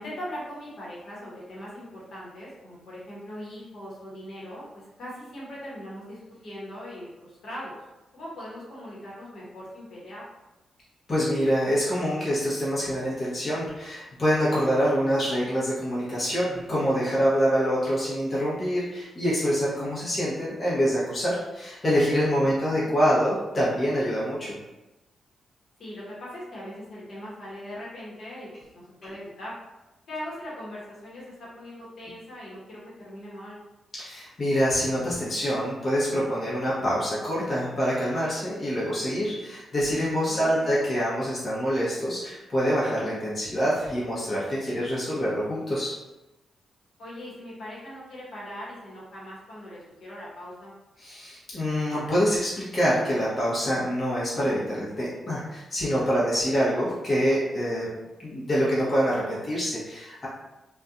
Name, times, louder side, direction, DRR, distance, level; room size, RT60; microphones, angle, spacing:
voice 1, 0.0-7.8 8.1-10.2 22.4-22.9 25.8-29.6 30.1-33.6 40.3-40.7 47.0-50.7, equal, 65° left, -7 dB, 1.1 m, -40 dB
voice 2, 11.1-24.6 29.0-29.1 34.0-45.9 51.0-57.9 58.2-60.3, equal, 40° left, -8 dB, 0.9 m, -26 dB
2.5 x 2.3 x 2.4 m, 1.0 s
supercardioid pair, 50°, 0 cm